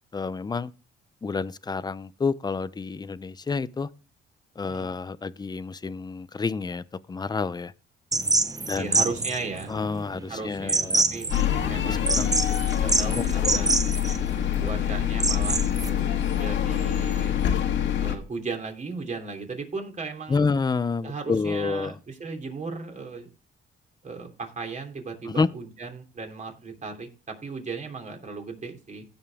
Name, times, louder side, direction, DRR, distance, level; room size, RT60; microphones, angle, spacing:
voice 1, 0.1-0.7 1.2-3.9 4.6-7.7 8.7-9.1 9.7-11.0 11.9-12.4 13.1-13.7 20.3-22.0 25.3-25.5, left 4 dB, 20° left, 0.6 m, -29 dB
sound 1, 8.1-15.9, right 3 dB, 20° right, 0.9 m, -26 dB
voice 2, 8.7-9.7 10.3-11.3 11.7-12.1 12.8-13.8 14.6-17.3 18.0-20.5 21.0-23.3 24.0-29.1, right 4 dB, 40° right, 3.1 m, -36 dB
sound 2, 11.3-18.1, left 10 dB, 70° left, 1.7 m, -25 dB
16.5 x 5.5 x 3.5 m
cardioid pair, 90°, 20 cm